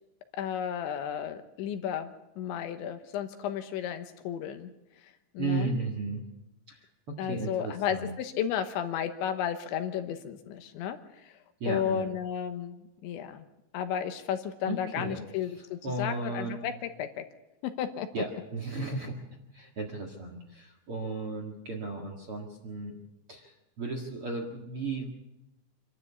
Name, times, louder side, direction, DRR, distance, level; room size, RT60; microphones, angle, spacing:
voice 1, 0.4-4.7 5.3-5.7 7.2-11.4 11.7-13.4 13.7-17.2 17.6-18.1, left 9 dB, 80° left, 7 dB, 3.4 m, -33 dB
voice 2, 5.4-6.2 6.7-8.1 11.6-12.1 14.6-15.2 15.5-16.6 18.1-19.2 19.5-22.9 23.3-25.1, right 3 dB, 50° right, 1 dB, 1.8 m, -35 dB
26.0 x 12.5 x 8.4 m, 0.93 s
omnidirectional pair, 5.3 m